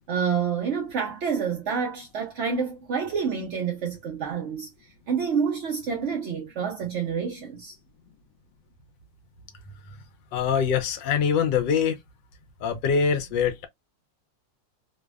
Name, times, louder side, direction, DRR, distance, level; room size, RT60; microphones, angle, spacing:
voice 1, 0.1-4.7 5.1-7.7, right 6 dB, 80° right, 0.6 m, -28 dB
voice 2, 10.3-12.0 12.6-13.7, left 6 dB, 80° left, 1.3 m, -24 dB
3.3 x 2.1 x 2.3 m
omnidirectional pair, 2.0 m